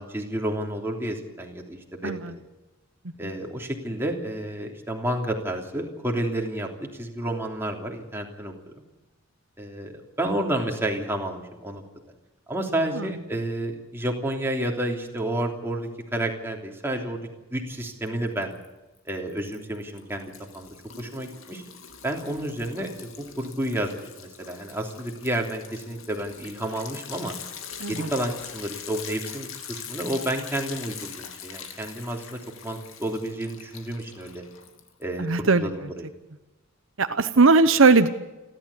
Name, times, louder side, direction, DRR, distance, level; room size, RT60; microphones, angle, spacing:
voice 1, 0.0-2.4 3.2-8.5 9.6-9.9 10.2-11.8 12.5-17.2 17.5-18.5 19.0-21.6 22.0-27.3 27.9-34.4 35.0-36.1, right 1 dB, 10° right, 1 dB, 3.2 m, -30 dB
Liquid, 18.1-18.6 19.0-35.2, left 7 dB, 70° left, 2.7 m, -42 dB
voice 2, 35.2-35.7 37.0-38.1, right 3 dB, 65° right, 10 dB, 1.0 m, -19 dB
29.0 x 12.5 x 8.5 m, 1.1 s
head